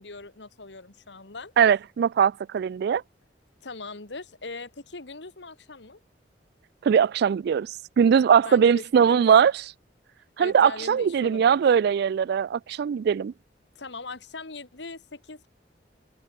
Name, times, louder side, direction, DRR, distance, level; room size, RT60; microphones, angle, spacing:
voice 1, 0.0-1.5 3.6-6.0 8.5-9.3 10.4-11.6 13.8-15.5, left 3 dB, 70° left, 2.0 m, -40 dB
voice 2, 1.6-3.0 6.8-9.5 10.4-13.3, right 7 dB, 60° right, 0.3 m, -20 dB
head